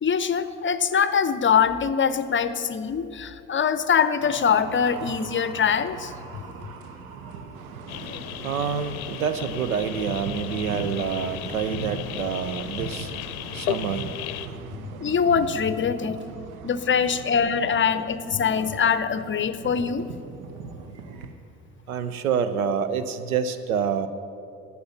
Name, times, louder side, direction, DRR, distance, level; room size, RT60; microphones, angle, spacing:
voice 1, 0.0-6.4 15.0-16.2 16.6-20.1, left 7 dB, 30° left, 0.7 m, -23 dB
sound 1, 4.2-21.3, right 4 dB, 70° right, 1.1 m, -40 dB
voice 2, 7.6-8.0 8.4-14.4 21.9-24.1, right 7 dB, 90° right, 0.7 m, -28 dB
sound 2, 7.9-14.5, left 12 dB, 80° left, 0.6 m, -35 dB
11.5 x 8.4 x 7.1 m
hypercardioid pair, 55°, 42 cm